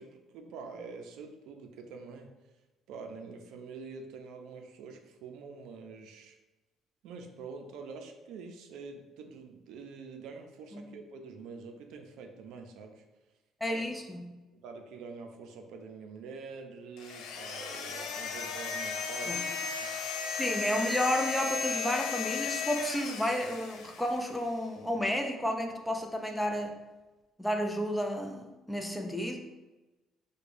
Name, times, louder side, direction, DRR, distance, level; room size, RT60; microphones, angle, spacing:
voice 1, 0.0-2.3 2.9-6.4 7.0-13.0 13.7-13.8 14.5-19.4 19.7-20.0 20.8-20.9, right 4 dB, 80° right, 4 dB, 0.4 m, -46 dB
voice 2, 13.6-14.3 19.3-19.4 20.3-26.7 27.4-29.4, left 1 dB, 5° left, 3 dB, 0.4 m, -31 dB
sound 1, 17.0-24.3, left 5 dB, 80° left, 0.4 m, -35 dB
4.7 x 2.2 x 2.5 m, 1.1 s
cardioid pair, 100°, 0 cm